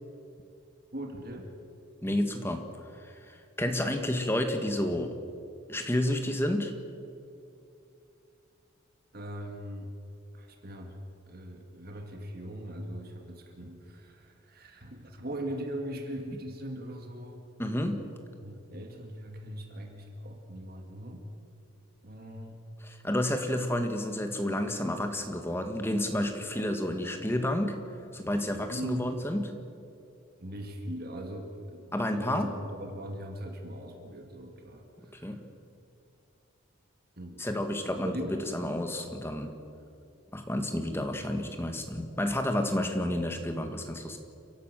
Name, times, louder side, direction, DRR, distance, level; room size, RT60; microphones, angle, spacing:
voice 1, 0.9-1.5 9.1-9.9 10.3-11.0 11.3-17.4 18.4-21.3 22.0-22.6 28.7-29.1 30.4-35.4 37.2-37.5 38.0-38.4, equal, 45° right, 3 dB, 2.1 m, -40 dB
voice 2, 2.0-2.6 3.0-5.2 5.7-6.7 17.6-18.0 22.8-27.8 28.1-29.4 31.9-32.5 35.2-35.4 37.4-38.2 38.4-39.5 40.3-44.2, left 1 dB, 10° left, 5 dB, 1.6 m, -30 dB
29.5 x 11.5 x 7.6 m, 2.6 s
head